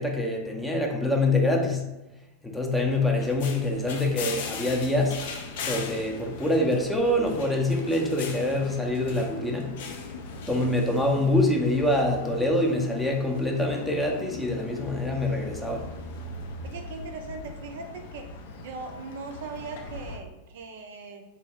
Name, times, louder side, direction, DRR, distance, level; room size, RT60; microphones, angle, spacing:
voice 1, 0.0-1.8 2.4-5.2 5.6-9.7 10.5-15.9, left 1 dB, 5° left, 0 dB, 0.5 m, -25 dB
sound 1, 2.8-20.2, left 4 dB, 55° left, 0.4 m, -39 dB
voice 2, 16.6-18.3 18.6-21.2, right 4 dB, 55° right, 4 dB, 0.3 m, -39 dB
3.3 x 2.0 x 3.4 m, 0.99 s
figure-of-eight pair, 90°, 0 cm